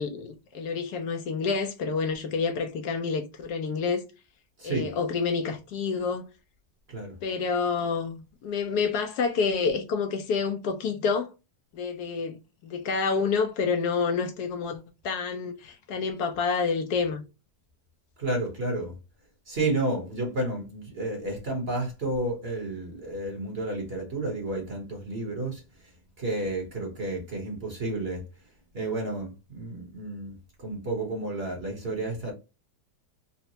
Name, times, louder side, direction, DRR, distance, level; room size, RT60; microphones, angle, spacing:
voice 1, 0.0-4.0 4.6-6.3 7.2-11.3 11.7-17.2, left 5 dB, 75° left, 1.1 m, -28 dB
voice 2, 4.6-4.9 6.9-7.2 18.2-19.0 19.5-25.6 26.2-28.2 28.7-32.3, right 2 dB, 40° right, 1.1 m, -31 dB
4.0 x 2.1 x 2.7 m
omnidirectional pair, 1.9 m